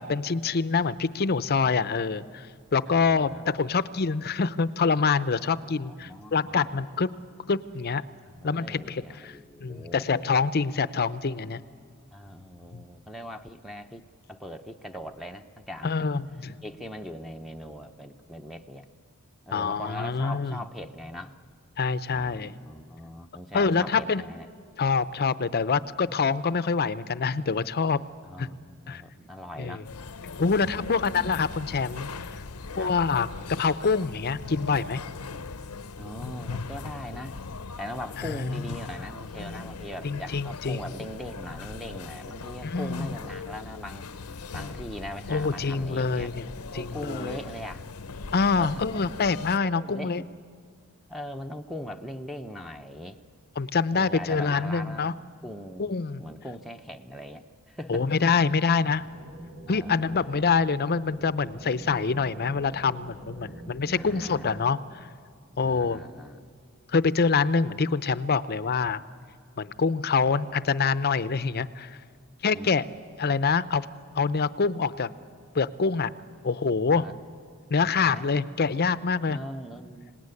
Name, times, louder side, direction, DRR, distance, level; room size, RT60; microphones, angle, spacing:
voice 1, 0.0-2.5 2.7-7.1 7.5-8.1 8.4-9.3 9.6-11.6 12.7-12.8 15.8-16.6 19.5-20.6 21.8-22.5 23.5-24.2 24.8-28.0 28.4-28.5 28.9-29.0 29.6-29.8 30.4-32.1 32.8-33.3 33.6-35.0 38.5-38.6 40.0-40.8 42.6-43.1 45.3-46.4 46.7-47.4 48.3-50.2 53.6-55.1 55.8-56.2 57.9-59.0 59.7-64.8 65.6-66.0 66.9-69.0 69.6-71.9 72.4-72.8 73.2-73.9 74.1-75.1 75.5-76.1 76.4-77.0 77.7-79.4, left 5 dB, 45° left, 15 dB, 0.6 m, -25 dB
voice 2, 2.9-3.7 5.6-6.8 8.3-10.1 12.1-16.1 16.6-18.9 19.5-21.4 22.1-24.5 28.2-29.9 30.4-31.1 32.7-33.0 36.0-37.4 37.8-44.1 44.5-46.3 46.7-47.9 48.5-48.8 49.7-50.3 51.1-53.2 53.9-55.2 55.4-55.9 56.2-58.1 59.7-60.4 63.4-63.7 64.0-64.6 65.6-66.6 68.8-69.0 72.5-72.7 76.9-77.1 77.8-78.3 79.3-80.2, equal, ahead, 6 dB, 0.7 m, -40 dB
sound 1, 29.8-49.6, left 4 dB, 85° left, 0.8 m, -40 dB
sound 2, 58.9-64.6, right 1 dB, 80° right, 6.7 m, -44 dB
25.5 x 18.5 x 9.7 m, 2.1 s
head